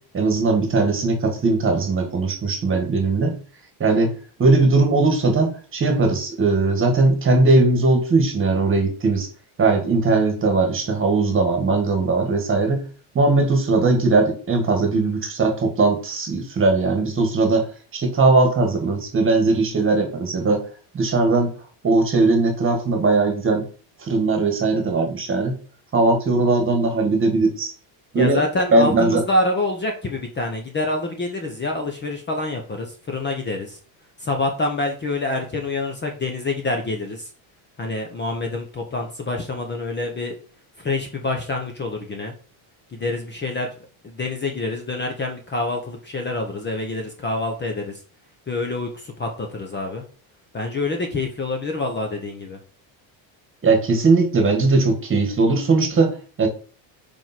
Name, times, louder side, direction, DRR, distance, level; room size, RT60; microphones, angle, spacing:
voice 1, 0.1-3.4 3.8-9.3 9.6-12.8 13.2-20.6 20.9-21.5 21.8-23.7 24.0-25.6 25.9-27.7 28.1-28.4 28.7-29.2 53.6-56.5, right 3 dB, 25° right, 4 dB, 1.7 m, -19 dB
voice 2, 28.1-33.8 34.2-37.3 37.8-40.4 40.8-42.3 42.9-43.7 44.0-48.0 48.5-50.0 50.5-52.6, left 2 dB, 20° left, 3 dB, 1.0 m, -26 dB
5.2 x 4.6 x 6.0 m, 0.39 s
cardioid pair, 150°, 50 cm